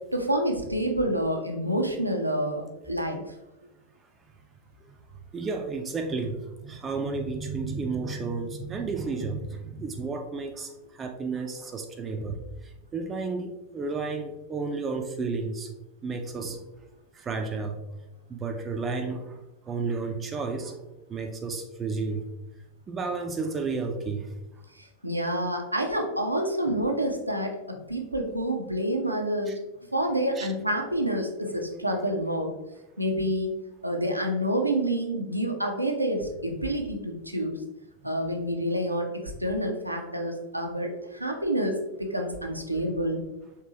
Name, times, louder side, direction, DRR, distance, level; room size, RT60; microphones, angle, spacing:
voice 1, 0.1-3.2 24.8-29.5 29.9-32.5 33.0-33.5 33.8-37.5 38.0-43.2, right 1 dB, 90° right, 2 dB, 0.6 m, -28 dB
voice 2, 5.3-15.7 16.0-16.6 17.1-17.8 18.3-19.4 19.7-20.7 21.1-22.3 22.9-24.4 26.7-26.8 29.4-29.6 30.4-30.5 38.0-38.1, right 4 dB, 20° right, 4 dB, 0.4 m, -32 dB
4.7 x 3.3 x 2.8 m, 0.99 s
figure-of-eight pair, 90°, 0 cm